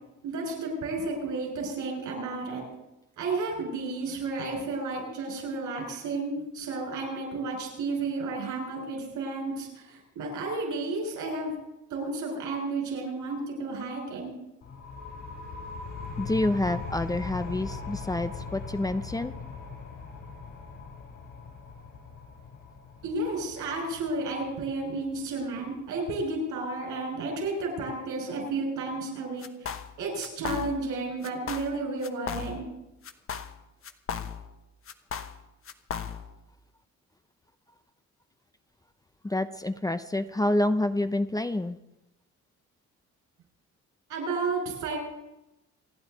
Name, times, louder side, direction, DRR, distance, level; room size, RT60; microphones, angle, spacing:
voice 1, 0.2-2.6 3.2-11.5 11.9-14.3 23.0-29.7 30.0-32.7 44.1-45.0, right 3 dB, 80° right, 1 dB, 6.5 m, -32 dB
sound 1, 14.6-26.0, left 4 dB, 65° left, 5.5 m, -40 dB
voice 2, 16.2-19.3 39.2-41.8, left 1 dB, 10° left, 10 dB, 0.7 m, -28 dB
sound 2, 29.4-29.9 30.2-30.9 31.2-31.8 32.0-32.8 33.0-34.6 34.9-36.4, left 7 dB, 45° left, 1.1 m, -36 dB
27.5 x 9.5 x 4.1 m, 0.91 s
cardioid pair, 90°, 30 cm